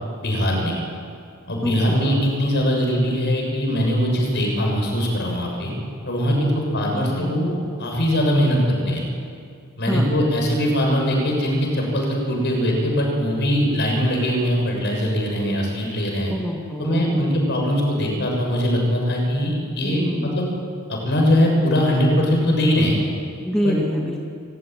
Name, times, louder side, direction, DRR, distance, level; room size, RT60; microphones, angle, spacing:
voice 1, 0.2-0.8 1.5-5.7 6.0-7.5 7.8-8.6 8.8-9.0 9.8-16.3 16.8-20.5 20.9-23.0 23.6-23.8, equal, 50° left, 0 dB, 7.2 m, -21 dB
voice 2, 1.6-2.0 6.3-7.5 9.9-10.1 10.6-10.7 16.3-17.3 19.8-20.4 23.4-24.3, equal, ahead, -2 dB, 2.2 m, -27 dB
27.5 x 16.5 x 9.5 m, 2.4 s
head